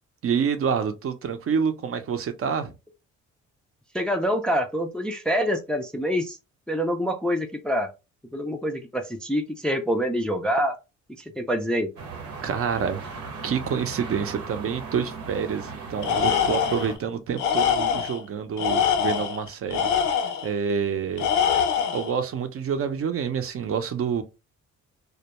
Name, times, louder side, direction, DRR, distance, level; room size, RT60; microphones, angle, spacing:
voice 1, 0.2-2.7 12.4-13.0 13.4-19.9 20.4-21.3 21.9-24.2, right 7 dB, 50° right, 0.6 m, -27 dB
voice 2, 3.9-6.4 6.7-7.9 8.3-10.8 11.4-11.9, equal, 5° left, 0.3 m, -26 dB
sound 1, 12.0-17.0, right 4 dB, 80° right, 0.8 m, -37 dB
Tools, 16.0-16.9 17.4-18.2 18.6-20.5 21.2-22.1, left 8 dB, 75° left, 0.6 m, -24 dB
2.2 x 2.2 x 2.8 m
cardioid pair, 90°, 30 cm